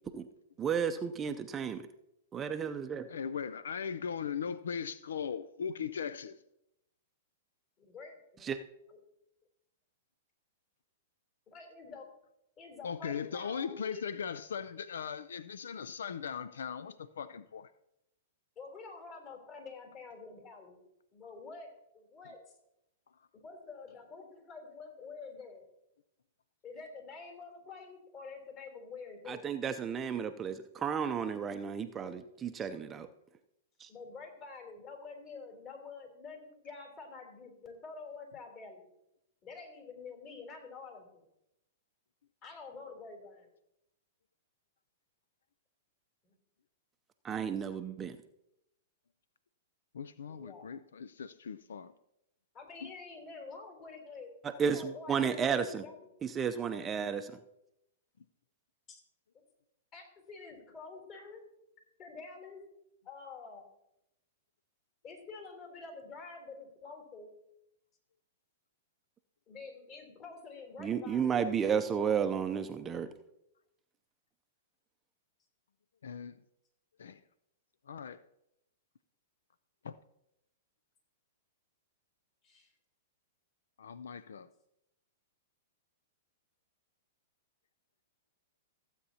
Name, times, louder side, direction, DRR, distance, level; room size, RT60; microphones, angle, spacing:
voice 1, 0.6-1.8 2.3-3.1 8.4-8.6 29.3-33.1 33.8-33.9 47.2-48.1 54.6-55.8 56.2-57.3 70.8-73.1, right 7 dB, 20° right, 0.5 m, -32 dB
voice 2, 3.1-6.4 12.8-17.7 49.9-51.9 52.8-52.9 76.0-76.4 77.0-77.2 77.9-78.2 79.8-80.0 83.8-84.5, left 7 dB, 85° left, 0.4 m, -39 dB
voice 3, 7.8-8.5 8.9-9.0 11.5-12.1 12.6-14.0 18.5-20.8 21.1-22.4 23.3-25.6 26.6-29.5 33.9-38.9 39.4-41.2 42.4-43.5 46.2-46.3 50.3-50.7 52.5-54.3 54.6-56.1 58.9-59.0 59.9-61.4 62.0-62.6 63.0-63.7 65.0-67.3 69.5-71.4 82.4-82.7, left 4 dB, 35° left, 3.3 m, -48 dB
15.5 x 8.0 x 2.8 m
hypercardioid pair, 130°, 0 cm